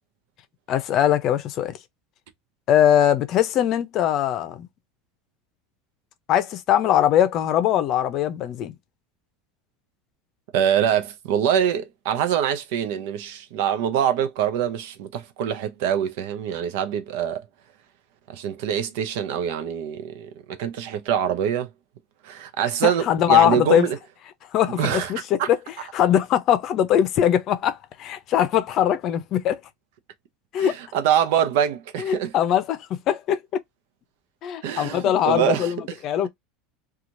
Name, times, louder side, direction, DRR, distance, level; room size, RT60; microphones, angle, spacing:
voice 1, 0.7-1.8 2.7-4.7 6.3-8.8 22.8-23.9 24.5-25.6 25.9-29.6 30.5-30.7 32.0-33.6 34.4-36.3, left 10 dB, 50° left, 0.6 m, -21 dB
voice 2, 10.5-17.4 18.3-21.7 22.2-24.0 24.8-25.5 30.6-32.3 34.6-35.7, right 9 dB, 75° right, 0.6 m, -24 dB
2.9 x 2.4 x 2.5 m
supercardioid pair, 120°, 0 cm